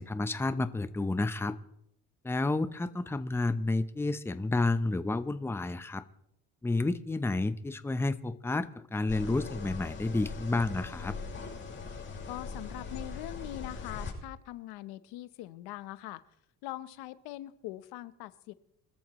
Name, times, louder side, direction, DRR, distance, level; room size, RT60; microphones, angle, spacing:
voice 1, 0.0-1.6 2.2-6.0 6.6-11.2, left 2 dB, 5° left, 12 dB, 0.7 m, -30 dB
sound 1, 9.1-14.1, left 4 dB, 30° left, 6.3 m, -41 dB
voice 2, 12.3-16.2 16.6-18.5, left 15 dB, 85° left, 14 dB, 0.9 m, -42 dB
25.0 x 13.5 x 3.1 m, 0.77 s
cardioid pair, 110°, 37 cm